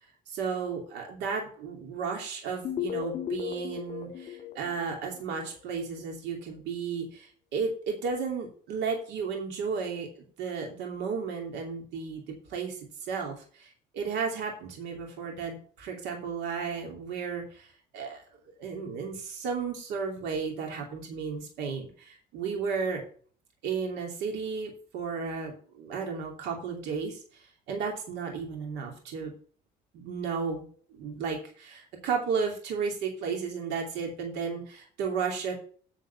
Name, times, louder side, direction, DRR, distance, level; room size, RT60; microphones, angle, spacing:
voice 1, 0.3-12.2 12.5-18.2 18.6-23.0 23.6-29.3 29.9-30.7 30.9-35.5, right 5 dB, 85° right, 1 dB, 2.8 m, -34 dB
sound 1, 2.6-5.6, left 10 dB, 55° left, 1.8 m, -36 dB
9.4 x 4.7 x 7.1 m, 0.43 s
cardioid pair, 110°, 17 cm